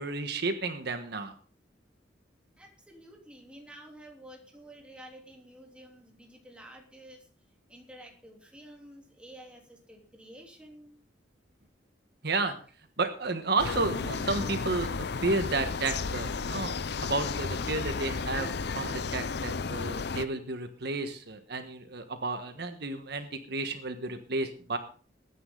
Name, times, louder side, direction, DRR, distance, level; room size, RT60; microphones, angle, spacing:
voice 1, 0.0-1.3 12.2-12.5 13.0-18.5 18.7-24.8, right 3 dB, 65° right, 8 dB, 1.4 m, -32 dB
voice 2, 2.6-7.3 7.7-11.0, right 1 dB, 5° right, 0 dB, 3.4 m, -50 dB
sound 1, 13.6-20.3, left 4 dB, 65° left, 0.6 m, -33 dB
21.0 x 9.8 x 3.9 m, 0.40 s
head